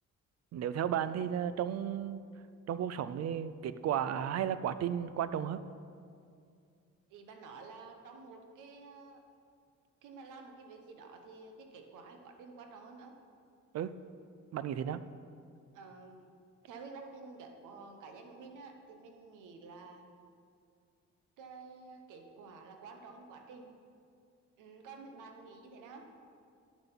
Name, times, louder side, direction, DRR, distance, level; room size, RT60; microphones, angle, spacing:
voice 1, 0.5-2.2 2.7-5.6 13.7-13.9 14.5-15.0, right 9 dB, 55° right, 14 dB, 0.5 m, -34 dB
voice 2, 7.1-9.2 10.0-13.1 15.7-16.3 16.7-20.0 21.4-23.7 24.6-26.1, right 4 dB, 90° right, 5 dB, 1.1 m, -50 dB
8.8 x 6.8 x 5.8 m, 2.4 s
cardioid pair, 90°, 30 cm